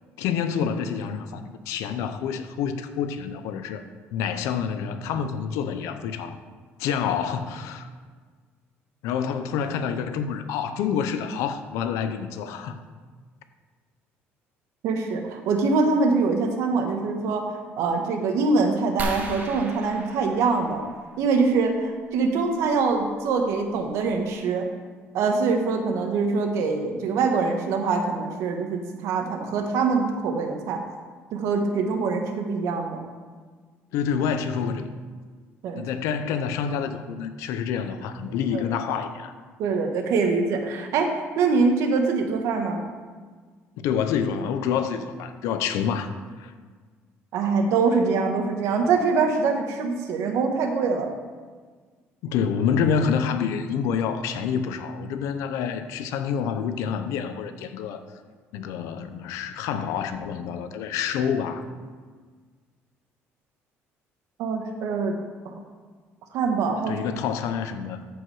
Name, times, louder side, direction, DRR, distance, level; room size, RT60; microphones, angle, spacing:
voice 1, 0.2-3.8 4.1-6.4 6.8-7.9 9.0-12.8 33.9-34.9 35.8-39.3 43.8-46.1 46.4-46.5 52.2-58.0 58.5-61.7 66.9-68.0, left 7 dB, 90° left, 9 dB, 0.8 m, -27 dB
voice 2, 14.8-20.8 21.2-24.7 25.1-30.8 31.3-33.0 35.6-35.9 38.5-38.6 39.6-41.1 41.4-42.9 47.3-51.1 64.4-65.5 66.3-67.0, right 4 dB, 75° right, 4 dB, 1.4 m, -24 dB
sound 1, 19.0-21.4 23.0-23.1 23.7-23.8 24.1-24.3, right 1 dB, 35° right, 1.5 m, -36 dB
14.0 x 4.9 x 4.8 m, 1.5 s
cardioid pair, 125°, 5 cm